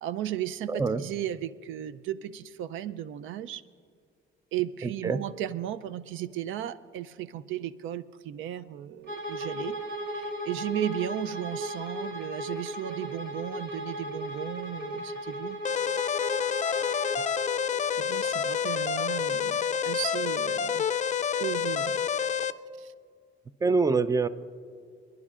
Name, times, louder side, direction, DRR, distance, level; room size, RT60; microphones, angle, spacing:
voice 1, 0.0-3.6 4.5-9.8 10.1-15.6 17.9-20.8 21.4-22.0 22.8-22.9, right 12 dB, 85° right, 15 dB, 0.5 m, -35 dB
voice 2, 0.7-1.0 4.8-5.2 23.6-24.3, right 4 dB, 15° right, 14 dB, 0.5 m, -25 dB
Bowed string instrument, 9.0-17.6, equal, 65° right, 3.1 m, -36 dB
sound 1, 15.7-22.5, left 7 dB, 40° left, 0.4 m, -28 dB
28.5 x 10.5 x 2.5 m, 2.1 s
cardioid pair, 90°, 20 cm